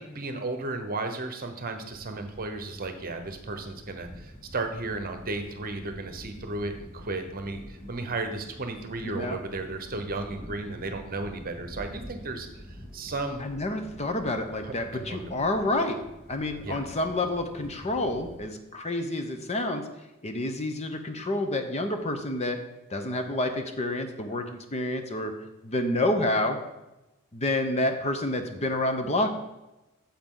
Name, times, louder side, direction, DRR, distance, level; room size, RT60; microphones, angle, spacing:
voice 1, 0.0-12.5 12.9-13.5 14.6-15.3 16.6-16.8, right 2 dB, 40° right, 6 dB, 1.0 m, -34 dB
sound 1, 1.8-18.4, equal, 10° left, 3.6 m, -47 dB
voice 2, 9.0-9.4 13.4-16.0 16.3-19.8 20.2-22.6 22.9-25.3 25.6-26.6 27.3-29.3, left 1 dB, 30° left, 6 dB, 0.8 m, -28 dB
9.4 x 7.3 x 3.8 m, 0.98 s
head